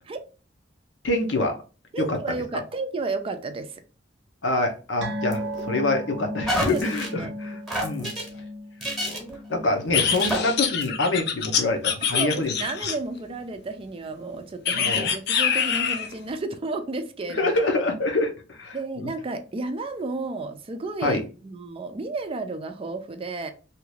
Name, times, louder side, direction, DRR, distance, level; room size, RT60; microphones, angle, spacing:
voice 1, 1.0-1.5 2.0-2.2 4.4-8.1 9.0-9.2 9.5-12.5 14.7-15.1 17.3-19.1 21.0-21.2, left 2 dB, 90° left, 3 dB, 0.7 m, -26 dB
voice 2, 1.9-3.8 6.6-7.3 12.1-17.5 18.7-23.5, right 3 dB, 30° right, 8 dB, 0.4 m, -32 dB
sound 1, 5.0-11.8 12.1-12.3 12.7-12.8, equal, 85° right, 0.7 m, -36 dB
sound 2, 5.3-5.8 6.4-7.1 7.7-8.3 8.8-9.4 9.9-10.4 10.8-10.9, equal, ahead, 0.9 m, -29 dB
sound 3, 9.9-13.2 14.6-16.1, left 7 dB, 60° left, 0.5 m, -25 dB
2.8 x 2.4 x 3.1 m, 0.36 s
head